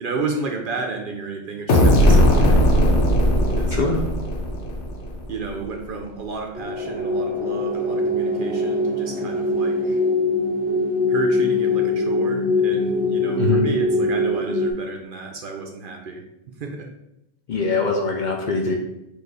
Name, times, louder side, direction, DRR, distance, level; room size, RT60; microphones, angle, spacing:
voice 1, 0.0-2.7 3.5-4.1 5.3-10.0 11.1-16.9, right 4 dB, 60° right, 3 dB, 0.7 m, -32 dB
sound 1, 1.7-5.3, equal, 85° left, 1.1 m, -17 dB
sound 2, 6.6-14.7, left 2 dB, 15° right, 0.3 m, -22 dB
voice 2, 17.5-18.8, left 3 dB, 55° left, 1 dB, 0.6 m, -22 dB
4.5 x 2.4 x 4.7 m, 0.85 s
omnidirectional pair, 1.2 m